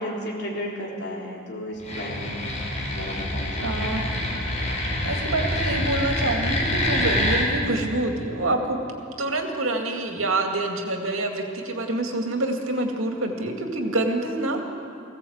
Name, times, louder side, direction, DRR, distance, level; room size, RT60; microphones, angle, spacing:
voice 1, 0.0-2.4 3.0-3.9, equal, 55° left, -2 dB, 3.9 m, -33 dB
sound 1, 1.8-7.5, left 1 dB, 35° left, 4.7 m, -26 dB
voice 2, 3.6-4.0 5.0-8.8 9.2-14.6, right 2 dB, 85° right, 3 dB, 2.3 m, -26 dB
20.0 x 16.5 x 8.0 m, 2.5 s
head